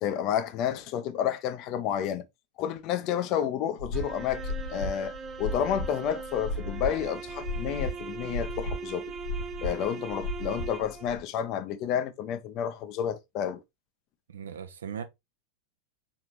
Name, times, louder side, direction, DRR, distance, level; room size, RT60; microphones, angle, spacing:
voice 1, 0.0-2.2 2.6-9.1 9.6-13.6, left 9 dB, 40° left, 0.6 m, -30 dB
sound 1, 3.8-11.2, left 2 dB, 60° left, 1.5 m, -35 dB
sound 2, 3.9-11.2, right 6 dB, 20° right, 0.4 m, -40 dB
voice 2, 14.3-15.0, right 8 dB, 65° right, 0.7 m, -38 dB
4.5 x 3.6 x 3.0 m
figure-of-eight pair, 90°, 0 cm